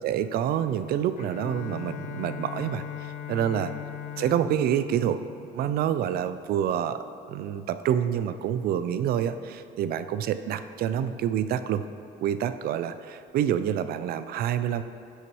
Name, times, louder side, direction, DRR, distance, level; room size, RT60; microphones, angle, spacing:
voice 1, 0.0-2.8 3.3-3.7 4.2-5.2 5.5-7.0 7.3-11.8 12.2-14.8, right 10 dB, 65° right, 12 dB, 0.4 m, -27 dB
Bowed string instrument, 1.2-6.4, left 10 dB, 50° left, 0.5 m, -39 dB
11.5 x 5.8 x 3.1 m, 2.6 s
cardioid pair, 110°, 17 cm